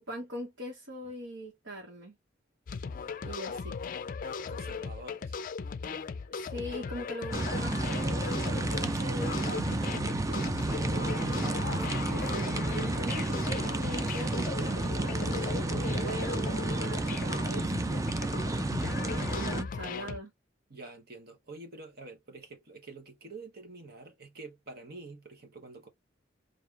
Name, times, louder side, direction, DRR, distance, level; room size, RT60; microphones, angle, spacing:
voice 1, 0.0-2.2 3.2-3.8 6.3-17.8 19.3-20.3, equal, 75° right, 1.4 m, -42 dB
sound 1, 2.7-20.2, left 5 dB, 45° left, 0.4 m, -38 dB
voice 2, 4.2-5.4 20.7-25.9, right 3 dB, 55° right, 1.0 m, -47 dB
sound 2, 7.3-19.6, right 2 dB, 15° right, 0.4 m, -31 dB
4.9 x 2.6 x 2.4 m
head